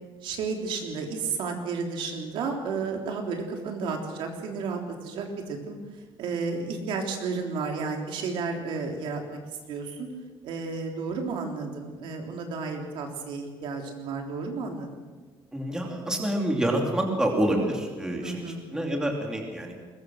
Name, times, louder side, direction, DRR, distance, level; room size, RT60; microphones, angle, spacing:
voice 1, 0.2-5.8 6.2-9.4 9.7-10.1 10.4-14.9 18.2-18.6, right 4 dB, 65° right, 2 dB, 3.4 m, -32 dB
voice 2, 15.5-19.7, right 1 dB, 5° right, 1 dB, 2.8 m, -27 dB
22.0 x 20.5 x 6.4 m, 1.4 s
cardioid pair, 175°, 9 cm